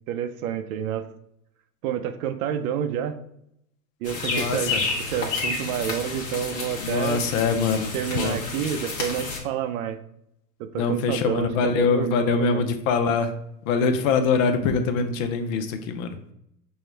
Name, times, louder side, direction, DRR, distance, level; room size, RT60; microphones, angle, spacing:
voice 1, 0.1-1.1 1.8-3.2 4.0-4.8 5.1-7.2 7.9-10.0 10.6-12.7, right 9 dB, 60° right, 10 dB, 0.6 m, -29 dB
sound 1, 4.0-9.4, left 4 dB, 30° left, 1.1 m, -30 dB
voice 2, 4.2-4.8 6.8-8.4 10.7-13.3 13.6-16.2, left 5 dB, 50° left, 8 dB, 0.7 m, -24 dB
5.5 x 2.3 x 3.2 m, 0.77 s
hypercardioid pair, 120°, 50 cm